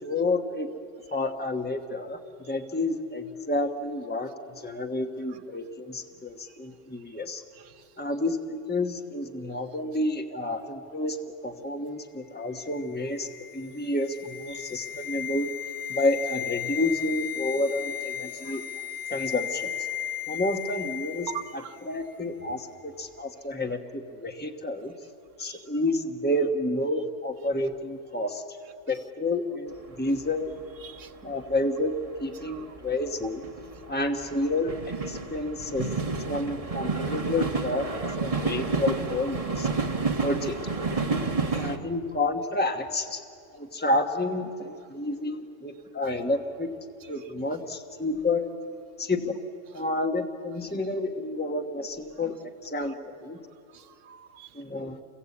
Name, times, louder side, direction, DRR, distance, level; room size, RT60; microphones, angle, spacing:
voice 1, 0.0-0.7 1.1-2.2 2.5-4.3 4.6-7.4 8.0-11.2 11.4-13.3 13.5-15.5 15.9-18.6 19.1-19.7 20.3-21.3 21.9-24.9 25.4-28.4 28.9-30.5 31.2-31.9 32.2-33.4 33.9-34.7 35.1-35.9 36.3-39.7 40.2-40.6 41.1-41.2 41.5-43.2 43.5-46.7 47.1-48.5 49.0-49.4 49.7-52.3 52.6-53.4 54.5-55.0, left 2 dB, 10° left, 4 dB, 1.2 m, -29 dB
sound 1, 12.6-21.8 22.1-22.3, left 10 dB, 50° left, 2.9 m, -35 dB
voice 2, 21.3-21.8 25.4-25.6 30.8-31.1 32.4-32.7 52.8-52.9 53.7-54.5, right 10 dB, 80° right, 8 dB, 1.2 m, -42 dB
sound 2, 29.8-29.9 30.1-31.0 31.2-41.8, right 4 dB, 30° right, 1.3 m, -30 dB
28.5 x 23.0 x 8.5 m, 2.3 s
omnidirectional pair, 1.3 m